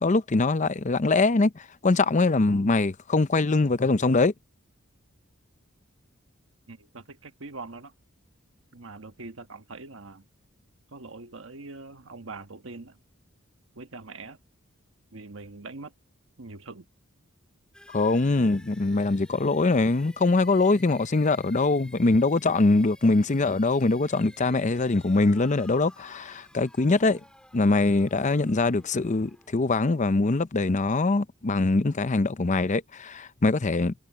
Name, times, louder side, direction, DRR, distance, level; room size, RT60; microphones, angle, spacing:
voice 1, 0.0-4.3 17.9-27.2 27.5-33.9, left 3 dB, 35° left, 0.6 m, -23 dB
voice 2, 6.7-7.9 8.7-10.2 10.9-13.0 13.7-14.4 15.1-15.9 16.4-16.9, right 3 dB, 65° right, 1.4 m, -42 dB
sound 1, 17.7-31.4, left 1 dB, 5° left, 4.7 m, -54 dB
head